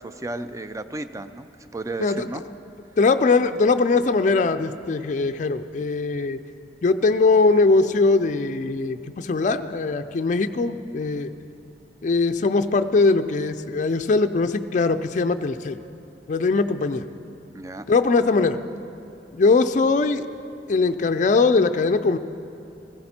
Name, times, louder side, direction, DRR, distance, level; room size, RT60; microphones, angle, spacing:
voice 1, 0.0-2.4 17.5-17.9, right 2 dB, 20° right, 10 dB, 0.4 m, -33 dB
voice 2, 3.0-6.4 6.8-11.3 12.0-15.8 16.3-17.1 17.9-18.6 19.3-20.3 20.7-22.2, left 3 dB, 45° left, 9 dB, 0.4 m, -21 dB
17.0 x 15.0 x 4.3 m, 2.7 s
head